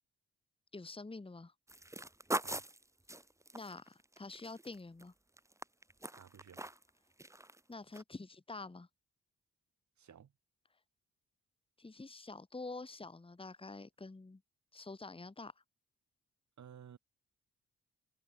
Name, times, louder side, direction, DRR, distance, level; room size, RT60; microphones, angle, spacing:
voice 1, 0.7-1.5 3.5-5.1 7.7-8.9 11.8-14.4 14.7-15.5, left 3 dB, 20° left, 1.7 m, -47 dB
sound 1, 1.7-5.0 5.4-6.9 7.2-7.6 7.9-8.0, right 1 dB, 10° right, 1.3 m, -42 dB
voice 2, 6.1-6.6 10.0-10.3 16.6-17.0, right 8 dB, 65° right, 5.4 m, -55 dB
cardioid pair, 70°, 30 cm